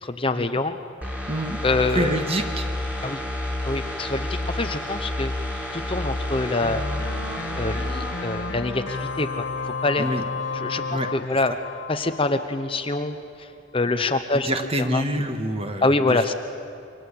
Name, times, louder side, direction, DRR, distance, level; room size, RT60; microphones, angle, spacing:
voice 1, 0.0-0.8 1.6-2.2 3.0-3.2 3.6-5.3 5.7-6.8 7.6-10.0 10.5-11.5 11.9-13.5 13.7-14.5 14.9-15.0 15.8-16.3, left 2 dB, 25° left, 8 dB, 0.8 m, -25 dB
sound 1, 1.0-9.7 10.0-10.1, left 1 dB, 5° right, 3.0 m, -30 dB
voice 2, 1.3-1.6 1.9-2.7 10.0-10.2 10.9-11.1 13.9-14.0 14.3-16.2, right 1 dB, 30° right, 6 dB, 1.8 m, -27 dB
sound 2, 6.6-12.7, left 4 dB, 70° left, 2.2 m, -32 dB
28.0 x 24.0 x 8.6 m, 2.6 s
head